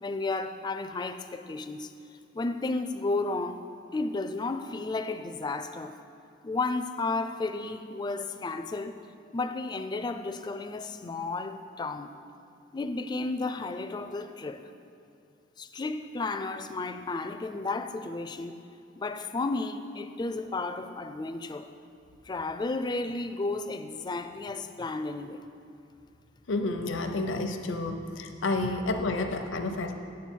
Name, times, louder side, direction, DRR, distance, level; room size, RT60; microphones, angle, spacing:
voice 1, 0.0-1.9 2.3-3.6 3.9-6.0 6.4-9.0 9.3-12.1 12.7-14.7 15.6-18.6 19.0-21.7 22.3-25.4 28.6-28.7, left 3 dB, 20° left, 8 dB, 0.3 m, -33 dB
voice 2, 26.5-29.9, left 2 dB, 85° left, 5 dB, 0.7 m, -30 dB
8.5 x 7.5 x 4.5 m, 2.6 s
head